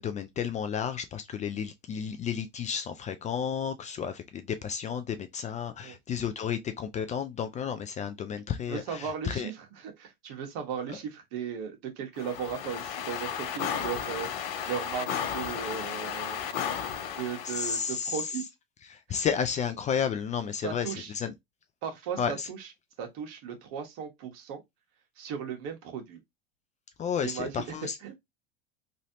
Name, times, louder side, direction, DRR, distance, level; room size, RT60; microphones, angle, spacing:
voice 1, 0.0-9.5 10.9-11.0 17.4-18.3 18.9-21.3 22.2-22.5 27.0-28.0, left 7 dB, 25° left, 0.4 m, -32 dB
voice 2, 8.6-16.6 17.2-18.4 19.1-19.3 20.6-21.1 21.8-22.7 23.0-24.6 25.2-26.2 27.2-28.1, right 7 dB, 60° right, 1.3 m, -37 dB
sound 1, 12.2-17.9, left 8 dB, 75° left, 0.8 m, -34 dB
3.2 x 2.7 x 2.7 m
supercardioid pair, 120°, 29 cm